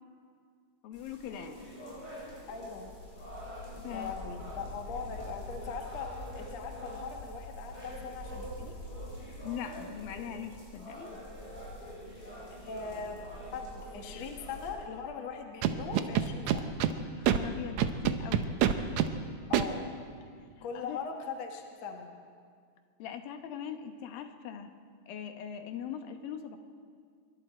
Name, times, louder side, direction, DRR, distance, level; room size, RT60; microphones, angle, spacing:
voice 1, 0.8-1.7 3.7-4.1 4.6-4.7 9.4-11.1 17.1-18.5 20.6-21.0 23.0-24.7 25.1-26.6, left 9 dB, 80° left, 6 dB, 3.0 m, -41 dB
sound 1, 0.9-14.7, equal, 15° left, 7.8 m, -44 dB
voice 2, 2.5-2.9 3.9-8.8 12.5-13.2 13.5-16.7 19.5-19.9 20.6-22.1, left 5 dB, 55° left, 2 dB, 2.3 m, -40 dB
Scratching (performance technique), 15.6-16.9 17.2-17.4 17.8-19.1 19.5-19.6, right 10 dB, 70° right, 1.8 m, -25 dB
26.0 x 23.0 x 4.5 m, 2.1 s
omnidirectional pair, 4.1 m